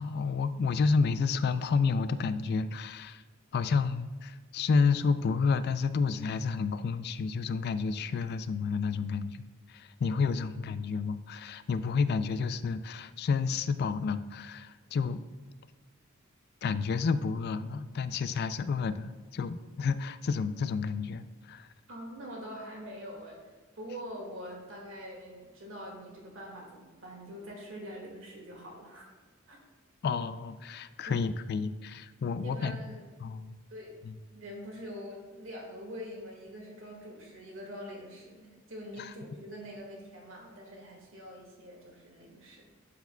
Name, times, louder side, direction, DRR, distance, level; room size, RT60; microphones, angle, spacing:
voice 1, 0.0-3.2 3.5-15.2 16.6-21.7 30.0-32.8 33.2-33.6 34.0-34.1 39.0-39.1, left 5 dB, 50° left, 13 dB, 0.3 m, -30 dB
voice 2, 21.9-23.4 23.8-29.0 29.5-29.6 31.1-31.3 32.4-33.0 33.7-33.9 34.3-42.6, equal, 70° right, -1 dB, 1.8 m, -44 dB
11.5 x 4.8 x 2.2 m, 1.4 s
head